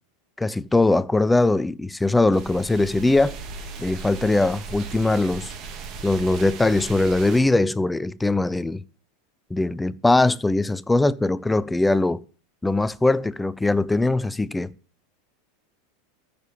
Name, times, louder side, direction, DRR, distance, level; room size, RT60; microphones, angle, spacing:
voice 1, 0.4-3.4 3.8-5.5 6.0-8.8 9.5-12.2 12.6-14.7, left 2 dB, 10° left, 0.7 m, -21 dB
sound 1, 2.3-7.4, right 5 dB, 45° right, 2.6 m, -37 dB
14.0 x 6.9 x 7.3 m
hypercardioid pair, 90°, 0 cm